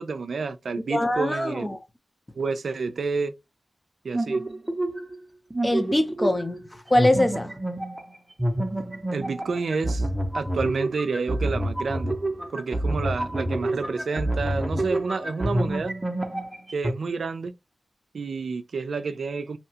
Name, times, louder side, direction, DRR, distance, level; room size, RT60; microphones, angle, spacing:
voice 1, 0.0-1.8 2.4-3.3 4.0-4.4 9.1-10.1 10.3-12.1 12.5-15.9 16.7-17.5 18.1-19.6, right 4 dB, 80° right, 0.3 m, -29 dB
voice 2, 0.9-1.8 5.6-6.6 6.9-7.5, left 1 dB, 20° left, 0.7 m, -23 dB
sound 1, 4.1-5.2 5.5-6.7 7.0-16.9, right 1 dB, 20° right, 0.7 m, -28 dB
2.8 x 2.3 x 2.8 m
cardioid pair, 50°, 0 cm